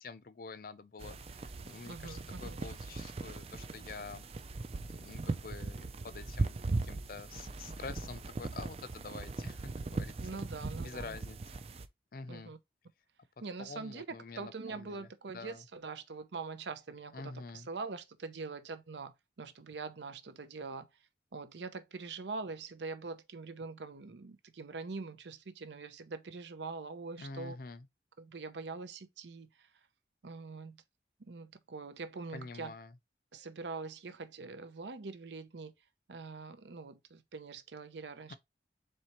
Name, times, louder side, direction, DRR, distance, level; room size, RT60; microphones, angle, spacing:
voice 1, 0.0-4.3 4.9-10.1 10.8-11.4 12.1-12.5 13.6-15.1 15.3-15.6 17.1-17.7 27.2-27.9 32.3-32.9 38.3-38.4, left 4 dB, 55° left, 0.5 m, -47 dB
sound 1, 1.0-11.9, right 3 dB, 35° right, 0.4 m, -39 dB
voice 2, 1.9-2.6 10.2-11.2 12.3-12.6 13.4-14.1 14.4-20.9 21.3-27.6 28.2-29.7 30.2-30.8 31.3-32.7 33.3-35.7 36.1-38.3, right 4 dB, 80° right, 0.6 m, -43 dB
4.3 x 3.2 x 3.0 m
head